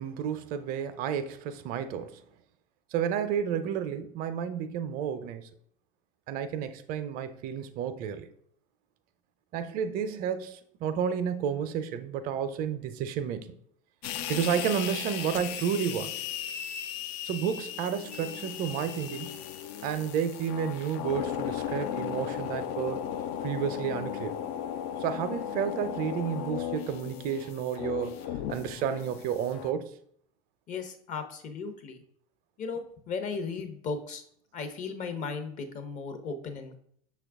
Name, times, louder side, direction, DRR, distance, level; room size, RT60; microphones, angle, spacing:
voice 1, 0.0-2.2 2.9-5.5 6.3-8.3 9.5-13.5 14.3-16.1 17.2-19.3 19.8-23.0 23.4-24.4 25.0-28.2 28.5-29.9, right 8 dB, 55° right, 10 dB, 0.5 m, -31 dB
sound 1, 14.0-29.7, left 10 dB, 60° left, 0.4 m, -36 dB
voice 2, 30.7-32.0 32.6-34.2 34.5-36.8, left 5 dB, 45° left, 7 dB, 0.8 m, -36 dB
5.8 x 2.3 x 3.5 m, 0.64 s
hypercardioid pair, 85°, 18 cm